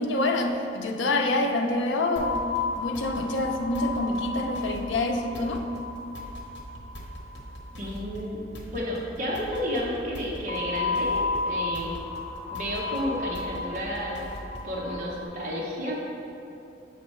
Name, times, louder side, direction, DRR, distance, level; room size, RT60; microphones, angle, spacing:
voice 1, 0.0-2.5 2.8-5.6, left 2 dB, 85° left, 4 dB, 0.5 m, -26 dB
sound 1, 2.2-14.8, equal, 70° left, 1.0 m, -43 dB
sound 2, 2.2-7.5 10.5-15.2, left 3 dB, 35° left, 0.8 m, -33 dB
voice 2, 7.8-8.4 8.7-12.0 12.5-14.3 14.6-15.9, equal, 40° right, -6 dB, 0.9 m, -31 dB
7.7 x 5.3 x 3.2 m, 2.7 s
head